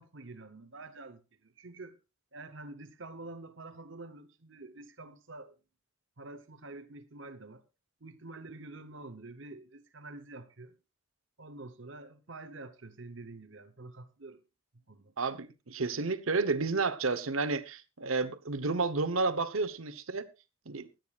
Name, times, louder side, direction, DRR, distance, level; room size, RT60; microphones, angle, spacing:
voice 1, 0.0-2.0 2.3-5.6 6.2-7.6 8.0-10.8 11.4-14.4 14.9-15.1, right 2 dB, 65° right, 1.0 m, -47 dB
voice 2, 15.2-20.2 20.7-20.9, right 3 dB, 85° right, 1.0 m, -31 dB
24.0 x 9.1 x 2.4 m
head